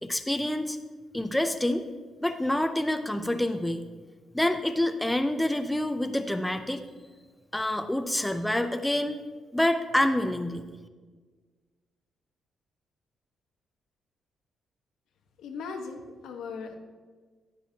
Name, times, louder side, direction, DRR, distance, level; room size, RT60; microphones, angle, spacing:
voice 1, 0.0-0.8 1.1-1.9 2.2-3.9 4.3-6.8 7.5-9.2 9.5-10.6, left 1 dB, 5° left, 8 dB, 0.4 m, -27 dB
voice 2, 15.4-16.7, left 4 dB, 85° left, 4 dB, 1.0 m, -38 dB
10.0 x 9.1 x 2.8 m, 1.4 s
cardioid pair, 130°, 0 cm